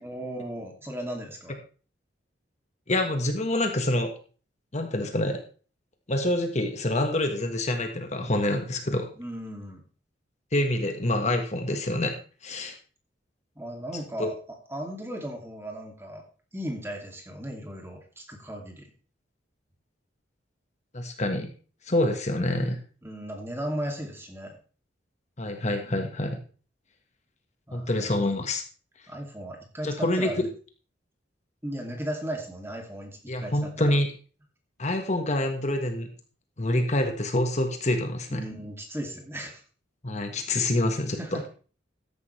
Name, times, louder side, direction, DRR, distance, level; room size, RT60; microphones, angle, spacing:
voice 1, 0.0-1.6 9.2-9.8 12.5-12.8 13.6-14.4 14.7-16.2 16.5-18.9 23.0-24.6 27.7-28.2 29.1-30.5 31.6-33.9 38.3-39.6 41.2-41.5, right 1 dB, 15° right, 2 dB, 2.6 m, -36 dB
voice 2, 2.9-4.1 4.7-5.4 6.1-9.1 10.5-12.7 14.2-14.3 20.9-21.5 21.9-22.8 25.4-26.4 27.7-28.6 29.8-30.3 33.3-34.1 34.8-36.1 36.6-38.4 40.0-41.2, left 1 dB, 40° left, 5 dB, 1.5 m, -26 dB
14.0 x 10.5 x 3.3 m, 0.38 s
head